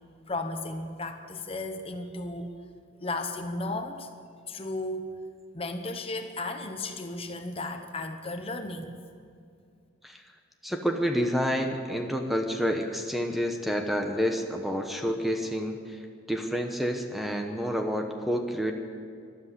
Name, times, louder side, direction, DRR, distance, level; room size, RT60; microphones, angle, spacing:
voice 1, 0.3-2.5 3.0-4.1 4.5-5.2 5.5-9.0, left 2 dB, 30° left, 6 dB, 1.0 m, -34 dB
voice 2, 10.6-16.0 16.3-18.7, equal, ahead, 4 dB, 1.0 m, -29 dB
13.5 x 12.5 x 8.2 m, 2.3 s
head